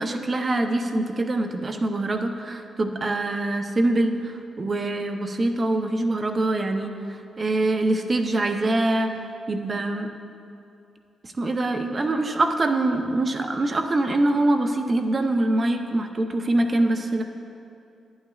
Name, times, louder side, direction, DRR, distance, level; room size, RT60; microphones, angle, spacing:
voice 1, 0.0-9.1 9.5-10.1 11.2-17.2, right 2 dB, 35° right, 5 dB, 0.6 m, -24 dB
10.5 x 8.6 x 2.3 m, 2.6 s
cardioid pair, 85°, 0 cm